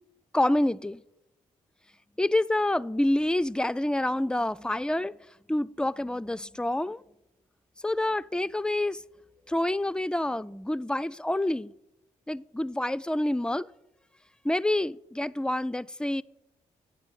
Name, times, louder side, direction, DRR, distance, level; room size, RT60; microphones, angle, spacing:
voice 1, 0.3-1.0 2.2-5.2 5.5-7.0 7.8-9.0 9.5-11.7 12.3-13.7 14.4-16.2, left 1 dB, 5° left, 0.3 m, -27 dB
8.6 x 7.1 x 7.4 m
hypercardioid pair, 40°, 15 cm